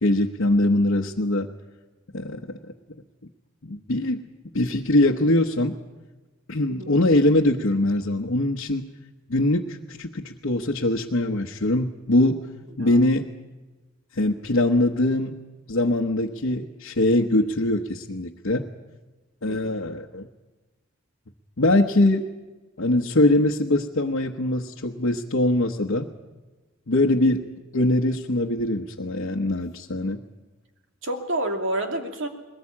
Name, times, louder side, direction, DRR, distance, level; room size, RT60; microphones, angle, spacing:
voice 1, 0.0-1.5 2.1-2.7 3.6-4.2 4.5-5.8 6.5-8.9 9.3-12.4 12.8-13.3 14.2-15.4 15.7-18.7 19.4-20.3 21.6-22.3 22.8-26.1 26.9-27.4 27.7-30.2, left 1 dB, 75° left, -1 dB, 1.1 m, -22 dB
voice 2, 19.5-19.8 31.0-32.3, right 1 dB, 70° right, 4 dB, 2.6 m, -29 dB
21.0 x 19.0 x 8.6 m, 1.2 s
head